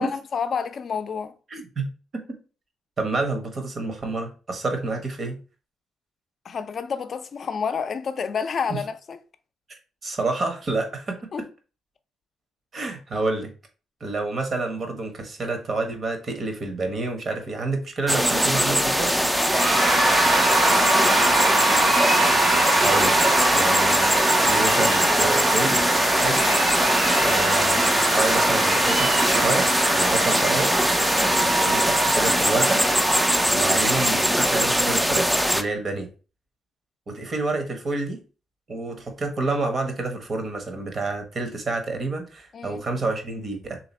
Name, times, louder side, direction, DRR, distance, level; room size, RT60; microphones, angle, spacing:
voice 1, 0.0-1.3 6.4-9.2 11.3-11.5 20.7-21.8 26.3-26.6 42.5-42.8, left 6 dB, 50° left, 0.5 m, -30 dB
voice 2, 1.5-1.9 3.0-5.4 8.7-8.8 10.0-11.2 12.7-13.5 14.0-19.1 22.8-23.2 23.5-25.8 26.2-26.4 27.2-30.8 31.2-32.8 33.5-36.1 37.1-38.2 38.7-43.8, right 3 dB, 40° right, 1.1 m, -28 dB
sound 1, 18.1-35.6, equal, 5° right, 0.4 m, -22 dB
Cheering / Applause / Crowd, 19.4-35.0, right 2 dB, 60° right, 1.4 m, -23 dB
3.3 x 2.9 x 4.2 m
cardioid pair, 90°, 0 cm